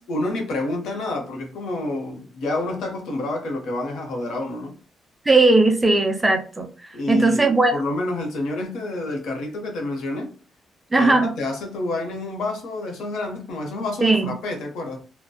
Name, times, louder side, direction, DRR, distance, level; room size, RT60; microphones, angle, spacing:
voice 1, 0.1-4.8 6.9-10.3 10.9-15.0, left 2 dB, 70° left, 0.8 m, -28 dB
voice 2, 5.3-6.7 7.1-7.8 10.9-11.3 14.0-14.3, right 2 dB, 15° right, 0.3 m, -18 dB
2.7 x 2.1 x 2.2 m
cardioid pair, 170°, 0 cm